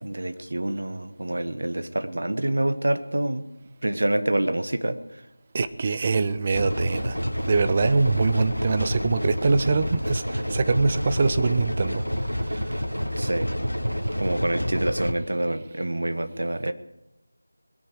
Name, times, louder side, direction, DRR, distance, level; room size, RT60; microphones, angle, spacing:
voice 1, 0.0-3.5 3.8-5.0 13.2-13.5 14.2-16.7, right 1 dB, 55° right, 10 dB, 1.3 m, -26 dB
voice 2, 5.5-7.2 7.5-12.0, right 4 dB, 25° right, 12 dB, 0.6 m, -23 dB
sound 1, 6.5-15.1, equal, 90° left, 1.7 m, -28 dB
21.5 x 10.0 x 4.9 m, 0.92 s
figure-of-eight pair, 165°, 0 cm